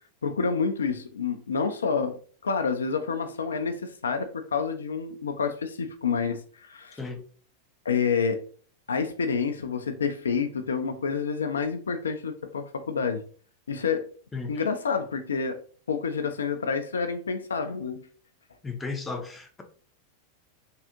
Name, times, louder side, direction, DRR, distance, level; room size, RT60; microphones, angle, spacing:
voice 1, 0.2-7.0 7.9-8.4 8.9-13.2 13.7-14.1 14.5-15.6 15.9-18.1, left 5 dB, 70° left, 0.3 m, -28 dB
voice 2, 18.6-19.6, left 4 dB, 15° left, 0.5 m, -34 dB
3.5 x 2.4 x 2.7 m
figure-of-eight pair, 90°, 0 cm